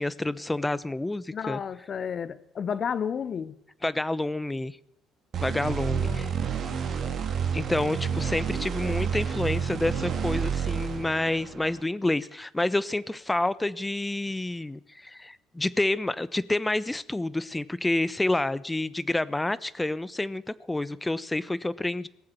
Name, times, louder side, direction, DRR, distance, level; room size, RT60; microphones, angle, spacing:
voice 1, 0.0-1.6 3.8-4.8 5.4-6.3 7.5-22.1, left 2 dB, 15° left, 0.9 m, -28 dB
voice 2, 1.3-3.6 5.9-6.3 6.7-6.8, left 7 dB, 50° left, 0.8 m, -32 dB
sound 1, 5.3-11.8, right 7 dB, 50° right, 2.5 m, -29 dB
18.5 x 7.6 x 9.1 m
hypercardioid pair, 55°, 0 cm